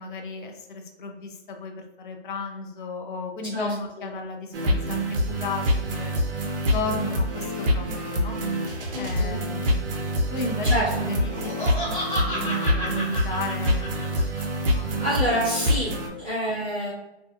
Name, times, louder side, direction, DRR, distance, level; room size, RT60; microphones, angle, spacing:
voice 1, 0.0-6.2 6.7-8.4 9.0-10.7 11.1-14.9 16.1-16.2, left 3 dB, 50° left, 4 dB, 0.5 m, -35 dB
voice 2, 3.5-4.1 8.9-9.3 10.6-11.2 15.0-16.9, equal, 10° right, -13 dB, 0.4 m, -28 dB
sound 1, 4.5-16.1, equal, 55° right, 0.6 m, -26 dB
Laughter, 11.2-14.4, equal, 15° left, 1.2 m, -31 dB
2.5 x 2.3 x 2.5 m, 0.93 s
hypercardioid pair, 155°, 34 cm